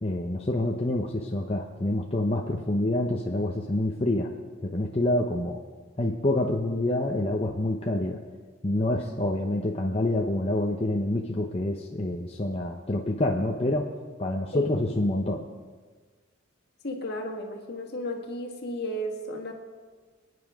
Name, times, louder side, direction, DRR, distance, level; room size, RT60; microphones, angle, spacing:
voice 1, 0.0-4.3 4.6-5.6 6.0-8.2 8.6-13.9 14.2-15.4, left 1 dB, 30° left, 0 dB, 0.8 m, -27 dB
voice 2, 16.8-19.5, left 1 dB, 55° left, 2 dB, 1.7 m, -34 dB
25.0 x 9.6 x 3.6 m, 1.4 s
head